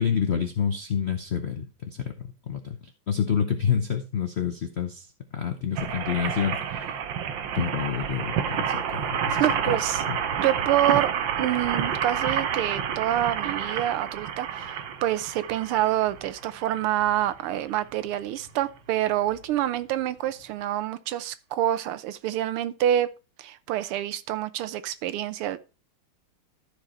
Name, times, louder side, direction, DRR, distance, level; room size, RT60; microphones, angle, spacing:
voice 1, 0.0-2.8 3.1-5.1 5.3-6.9 7.5-10.2, left 7 dB, 70° left, 0.6 m, -28 dB
sound 1, 5.8-16.9 17.5-17.6 17.8-17.9, right 7 dB, 65° right, 1.6 m, -29 dB
voice 2, 9.4-10.0 10.4-11.1 11.4-23.1 23.4-25.6, right 12 dB, 85° right, 1.7 m, -27 dB
sound 2, 14.5-20.7, right 1 dB, 45° right, 6.6 m, -56 dB
13.5 x 4.9 x 4.2 m
omnidirectional pair, 2.4 m